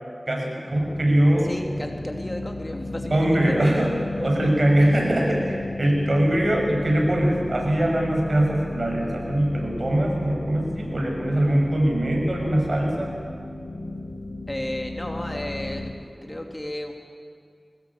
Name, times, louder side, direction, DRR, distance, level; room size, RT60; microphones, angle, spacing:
voice 1, 0.3-1.5 3.1-3.9 4.2-13.1, right 1 dB, 65° right, -1 dB, 6.4 m, -22 dB
sound 1, 0.7-15.9, left 2 dB, 55° left, 4.7 m, -35 dB
voice 2, 1.4-3.8 4.2-4.5 14.5-15.9 16.2-16.9, left 1 dB, 25° left, 3 dB, 2.8 m, -33 dB
22.0 x 18.5 x 8.6 m, 2.3 s
wide cardioid pair, 40°, 0 cm